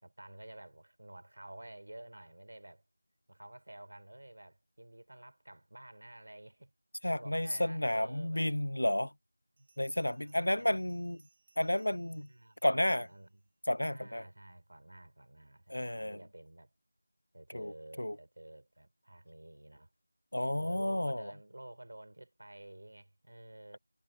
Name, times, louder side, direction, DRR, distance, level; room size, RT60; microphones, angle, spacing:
voice 1, 0.0-2.8 3.3-6.7 7.2-8.5 9.6-9.7 10.1-11.0 12.1-13.4 13.9-16.7 17.3-19.9 20.5-23.8, right 1 dB, 55° right, 4.9 m, -51 dB
voice 2, 7.0-9.1 9.8-11.2 11.6-12.3 12.6-13.1 13.7-14.2 15.7-16.2 17.5-17.7 18.0-18.2 20.3-21.3, left 1 dB, 90° left, 0.4 m, -31 dB
Bell, 9.6-13.4, right 4 dB, 15° right, 1.1 m, -70 dB
figure-of-eight pair, 180°, 0 cm